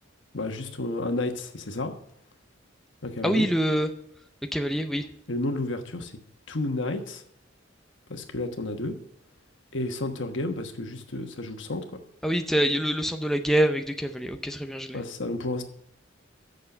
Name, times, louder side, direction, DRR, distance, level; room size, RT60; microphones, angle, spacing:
voice 1, 0.3-1.9 3.0-3.5 5.3-6.2 6.5-7.2 8.1-8.9 9.7-11.8 14.9-15.6, left 2 dB, 75° left, 5 dB, 1.3 m, -31 dB
voice 2, 3.2-3.9 4.5-5.1 12.2-15.0, right 1 dB, ahead, 5 dB, 0.5 m, -25 dB
8.3 x 6.6 x 6.6 m, 0.73 s
head